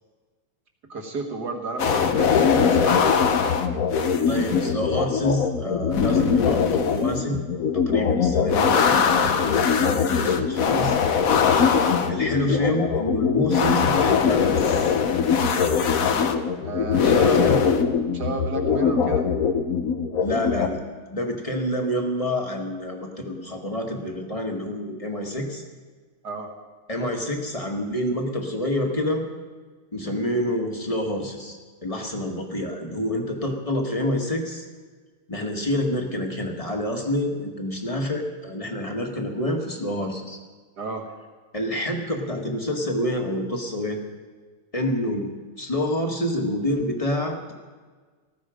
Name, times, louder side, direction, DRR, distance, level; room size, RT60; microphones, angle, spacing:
voice 1, 0.9-3.6 16.6-17.5 18.1-19.3 26.2-26.5 40.8-41.0, right 3 dB, 50° right, 2 dB, 2.3 m, -31 dB
sound 1, 1.8-20.7, left 6 dB, 55° left, 1.0 m, -21 dB
voice 2, 4.3-7.3 7.7-11.0 12.1-14.8 17.1-17.6 20.2-20.8 21.1-25.6 26.9-29.2 29.9-34.6 35.3-40.4 41.5-44.0 44.7-45.3 45.6-47.5, left 1 dB, 20° left, 2 dB, 1.5 m, -27 dB
18.5 x 14.0 x 5.1 m, 1.4 s
omnidirectional pair, 2.4 m